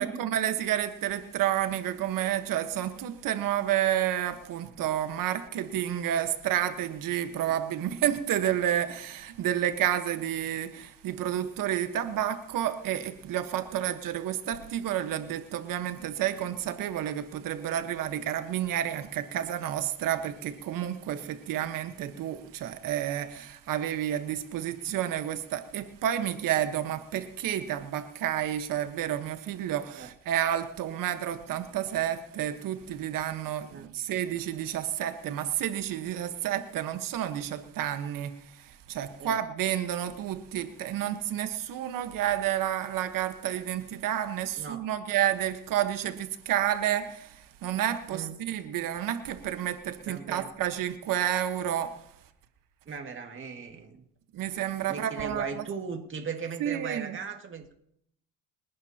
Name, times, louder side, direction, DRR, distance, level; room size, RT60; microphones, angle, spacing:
voice 1, 0.0-52.0 54.3-55.6 56.6-57.2, right 11 dB, 65° right, 1.4 m, -30 dB
voice 2, 44.6-44.9 48.1-48.4 50.1-50.5 52.9-54.0 54.9-57.7, right 5 dB, 35° right, 2.2 m, -38 dB
29.5 x 11.0 x 2.9 m
cardioid pair, 100°, 35 cm